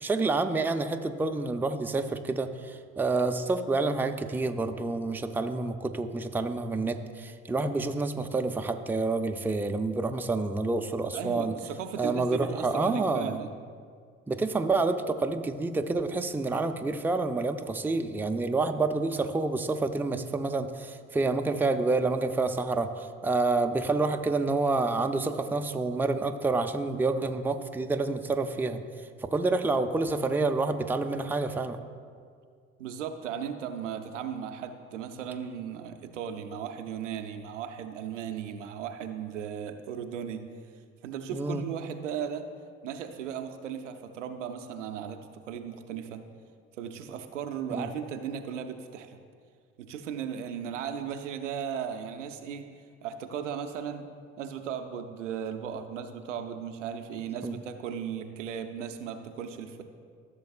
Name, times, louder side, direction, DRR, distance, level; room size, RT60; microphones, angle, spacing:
voice 1, 0.0-11.5 12.0-13.4 14.3-28.8 29.2-31.8 41.3-41.6 47.7-47.9 57.4-57.6, right 3 dB, 5° right, 6 dB, 0.4 m, -28 dB
voice 2, 11.1-13.5 32.8-40.5 41.0-42.5 42.8-46.2 46.8-49.2 49.8-52.7 53.0-54.1 54.4-59.8, right 8 dB, 85° right, 7 dB, 0.6 m, -36 dB
14.5 x 6.9 x 2.4 m, 2.1 s
hypercardioid pair, 55°, 36 cm